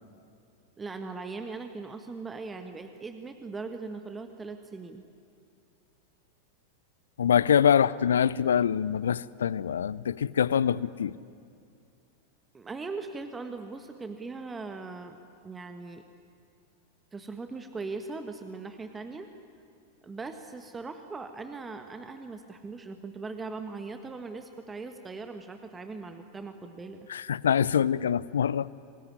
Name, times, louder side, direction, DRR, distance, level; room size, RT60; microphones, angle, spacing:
voice 1, 0.8-5.0 12.5-15.2 15.4-16.0 17.1-19.3 20.0-27.0, right 4 dB, 15° right, 7 dB, 1.4 m, -39 dB
voice 2, 7.2-11.1 27.1-28.7, left 8 dB, 65° left, 21 dB, 0.6 m, -24 dB
26.0 x 20.5 x 9.9 m, 2.4 s
figure-of-eight pair, 90°, 0 cm